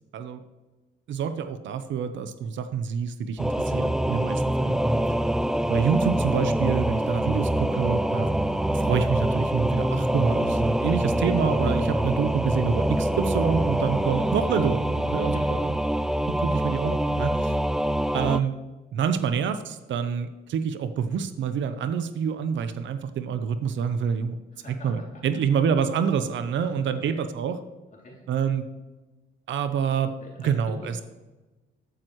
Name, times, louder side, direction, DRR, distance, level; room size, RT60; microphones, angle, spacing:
voice 1, 1.1-4.8 5.7-8.3 8.7-15.6 16.3-17.6 18.1-18.5 18.9-24.4 24.8-27.6 28.3-28.6 29.5-30.1 30.4-31.0, right 7 dB, 70° right, 10 dB, 0.8 m, -27 dB
Singing / Musical instrument, 3.4-18.4, right 1 dB, 5° right, 0.3 m, -25 dB
voice 2, 24.5-25.2 26.6-27.2 27.9-28.2 30.2-31.0, left 2 dB, 40° left, -2 dB, 2.9 m, -45 dB
14.0 x 9.0 x 3.1 m, 1.2 s
cardioid pair, 90°, 20 cm